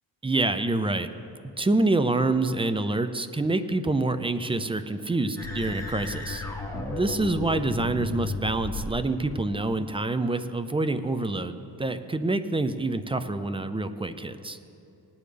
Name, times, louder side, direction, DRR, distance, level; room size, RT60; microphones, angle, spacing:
voice 1, 0.2-1.1 1.6-6.4 6.7-14.6, right 2 dB, 15° right, 10 dB, 0.4 m, -27 dB
sound 1, 5.4-9.0, left 2 dB, 5° left, 1.4 m, -33 dB
19.0 x 9.2 x 3.4 m, 2.7 s
cardioid pair, 105°, 41 cm